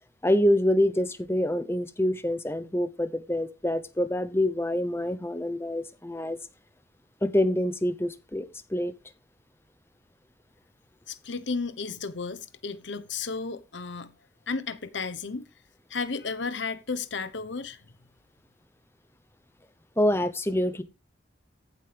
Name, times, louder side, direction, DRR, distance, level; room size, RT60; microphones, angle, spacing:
voice 1, 0.2-6.4 7.2-8.9 20.0-20.8, left 1 dB, 15° left, 0.8 m, -26 dB
voice 2, 11.1-14.1 14.5-15.4 15.9-17.8, left 4 dB, 75° left, 1.1 m, -33 dB
14.5 x 8.0 x 3.5 m
head